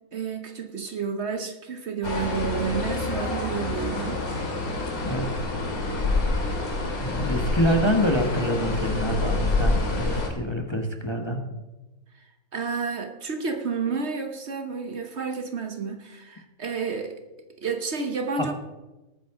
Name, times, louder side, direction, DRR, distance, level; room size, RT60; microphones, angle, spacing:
voice 1, 0.1-4.2 12.1-17.2 17.6-18.5, right 5 dB, 55° right, 7 dB, 1.2 m, -31 dB
sound 1, 2.0-10.3, left 2 dB, 80° left, 2.5 m, -27 dB
voice 2, 5.0-5.5 7.0-11.4 18.4-18.5, equal, 20° left, 3 dB, 1.0 m, -26 dB
19.0 x 9.3 x 3.7 m, 1.1 s
omnidirectional pair, 1.5 m